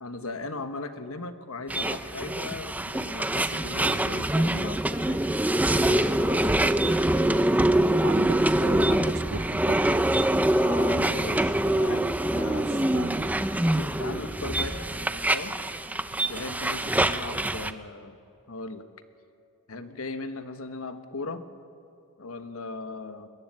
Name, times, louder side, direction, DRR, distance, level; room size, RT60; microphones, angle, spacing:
voice 1, 0.0-5.2 5.7-6.6 10.5-12.8 13.7-15.6 16.3-18.2 18.5-18.9 19.7-21.4 22.2-23.3, left 3 dB, 70° left, 10 dB, 1.3 m, -38 dB
sound 1, 1.7-17.7, right 1 dB, 5° right, 0.5 m, -25 dB
voice 2, 8.0-10.0 12.4-13.4, right 5 dB, 70° right, 16 dB, 0.6 m, -37 dB
21.0 x 15.0 x 9.7 m, 2.7 s
head